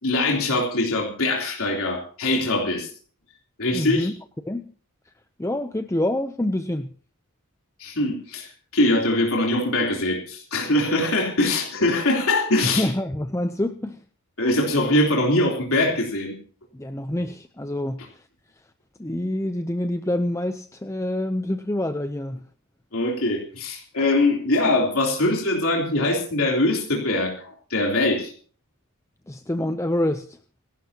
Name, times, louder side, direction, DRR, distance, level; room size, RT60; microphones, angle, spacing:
voice 1, 0.0-2.9 3.6-4.1 7.8-12.9 14.4-16.4 22.9-28.3, left 2 dB, 65° left, -1 dB, 3.5 m, -22 dB
voice 2, 3.7-4.1 4.4-4.7 5.4-6.9 12.6-14.0 16.7-18.2 19.0-22.4 29.3-30.4, left 1 dB, 15° left, 8 dB, 0.6 m, -26 dB
28.0 x 12.0 x 2.9 m, 0.43 s
head